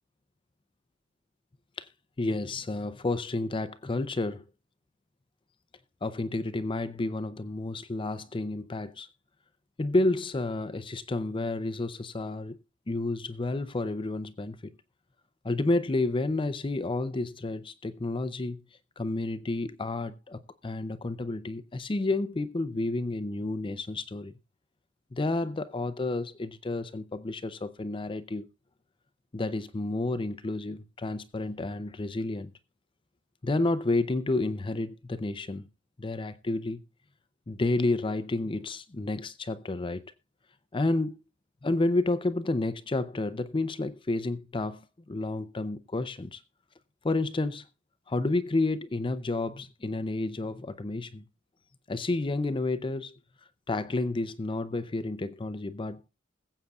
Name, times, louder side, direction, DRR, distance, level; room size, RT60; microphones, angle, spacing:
voice 1, 2.2-4.4 6.0-9.1 9.8-12.6 12.9-14.7 15.4-18.6 19.0-24.3 25.1-28.5 29.3-32.5 33.4-35.7 36.0-36.8 37.5-40.0 40.7-41.2 41.6-46.4 47.0-47.7 48.1-51.2 51.9-53.2 53.7-56.1, left 2 dB, 25° left, 0.5 m, -30 dB
21.0 x 8.0 x 2.3 m
head